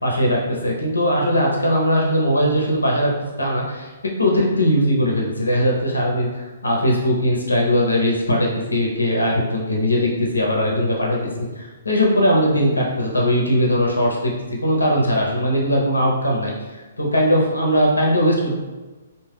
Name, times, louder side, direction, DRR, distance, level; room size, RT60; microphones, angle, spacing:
voice 1, 0.0-14.3 14.6-16.5 17.0-18.6, equal, 75° left, -2 dB, 0.9 m, -20 dB
3.6 x 2.4 x 3.4 m, 1.2 s
figure-of-eight pair, 125°, 0 cm